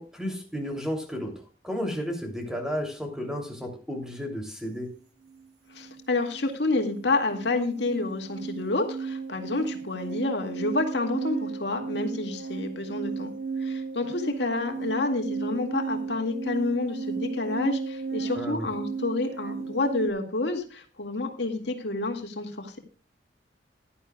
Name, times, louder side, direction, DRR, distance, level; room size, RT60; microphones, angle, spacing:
voice 1, 0.0-4.9 18.3-18.7, equal, 5° right, 2 dB, 2.9 m, -33 dB
sound 1, 5.3-5.5 5.7-20.1, right 5 dB, 70° right, 1.6 m, -35 dB
voice 2, 5.7-13.3 13.6-22.8, left 2 dB, 75° left, 4 dB, 2.1 m, -29 dB
16.0 x 11.5 x 2.3 m, 0.38 s
head